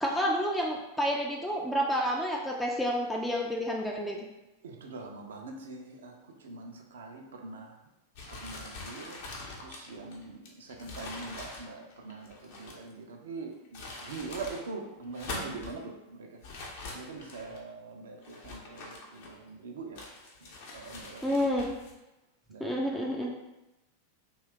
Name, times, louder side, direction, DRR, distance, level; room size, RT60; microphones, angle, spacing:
voice 1, 0.0-4.2 21.2-21.7 22.6-23.3, equal, 5° left, -2 dB, 0.3 m, -29 dB
voice 2, 4.6-6.1 6.4-7.7 8.3-9.2 9.6-16.4 16.9-20.0 20.7-21.4 22.5-23.3, right 3 dB, 60° right, 2 dB, 0.5 m, -43 dB
sound 1, 8.1-12.9 13.5-14.7 15.0-15.8 16.4-17.6 18.2-19.5 20.0-21.9, left 2 dB, 50° left, 0.6 m, -43 dB
2.6 x 2.3 x 3.4 m, 0.96 s
figure-of-eight pair, 90°, 0 cm